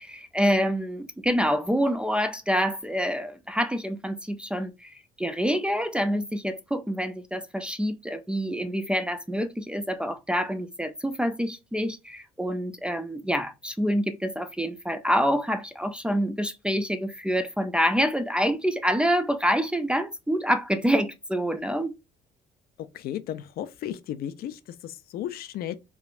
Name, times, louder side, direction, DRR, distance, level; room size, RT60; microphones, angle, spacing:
voice 1, 0.0-21.9, equal, 5° right, 0.3 m, -27 dB
voice 2, 22.9-25.7, left 11 dB, 65° left, 0.4 m, -34 dB
3.3 x 2.3 x 2.4 m
cardioid pair, 110°, 17 cm